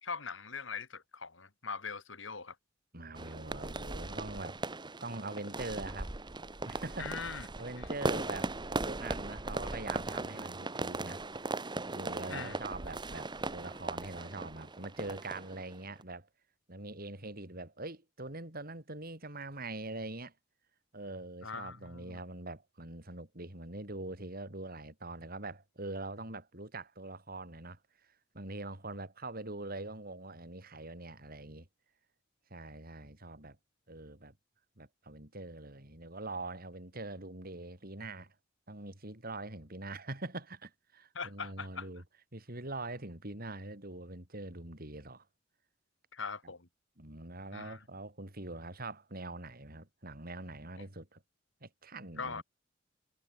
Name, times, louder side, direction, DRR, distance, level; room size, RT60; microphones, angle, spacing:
voice 1, 0.0-2.5 7.0-7.5 7.8-7.9 12.3-12.6 21.4-22.2 41.1-41.9 46.1-46.7 47.5-47.8 52.1-52.4, left 5 dB, 70° left, 3.3 m, -41 dB
voice 2, 2.9-4.6 5.0-6.1 6.7-7.3 7.6-11.6 11.9-16.3 16.7-20.3 20.9-31.7 32.5-33.6 33.9-34.3 34.8-38.3 38.7-42.0 42.3-45.2 47.0-51.2 51.6-52.4, right 2 dB, 50° right, 4.7 m, -43 dB
sound 1, 3.2-16.0, right 2 dB, 25° right, 1.3 m, -38 dB
head